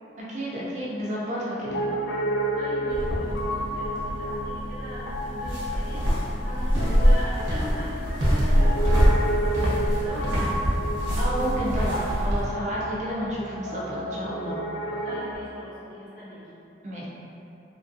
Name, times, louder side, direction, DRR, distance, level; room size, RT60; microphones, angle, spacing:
voice 1, 0.3-1.8 11.2-14.6 16.8-17.1, right 1 dB, 35° right, -6 dB, 0.4 m, -30 dB
Piano, 1.6-15.3, right 1 dB, 70° left, 0.4 m, -31 dB
voice 2, 2.5-6.0 6.4-10.6 15.0-16.4, equal, 50° left, -10 dB, 0.8 m, -40 dB
sound 1, 2.9-12.4, equal, 85° right, 0.7 m, -24 dB
2.8 x 2.4 x 2.6 m, 2.8 s
head